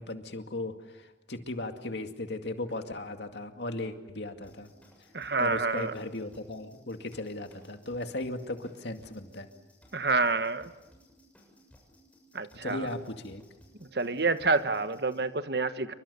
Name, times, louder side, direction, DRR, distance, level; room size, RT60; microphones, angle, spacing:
voice 1, 0.0-4.7 5.4-9.5 12.6-13.4, left 2 dB, 75° left, 5 dB, 2.2 m, -37 dB
sound 1, 4.4-15.2, equal, 10° left, 7.1 m, -60 dB
voice 2, 5.1-5.9 9.9-10.7 12.3-12.9 13.9-15.9, right 3 dB, 65° right, 10 dB, 1.3 m, -28 dB
29.0 x 24.0 x 7.0 m, 1.1 s
head